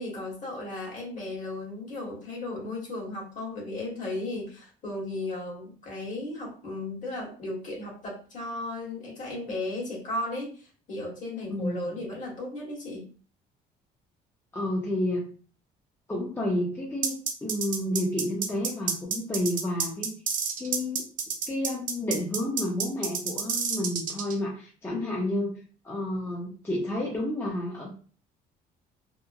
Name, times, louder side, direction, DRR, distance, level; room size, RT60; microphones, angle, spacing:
voice 1, 0.0-13.1 24.9-25.3, left 2 dB, 50° left, -2 dB, 1.4 m, -35 dB
voice 2, 11.5-12.0 14.5-15.3 16.1-20.1 20.6-21.1 21.5-25.6 25.8-27.9, left 1 dB, 15° left, -4 dB, 0.7 m, -30 dB
sound 1, 17.0-24.3, right 6 dB, 50° right, 0.5 m, -29 dB
2.9 x 2.1 x 2.4 m, 0.40 s
cardioid pair, 110°, 17 cm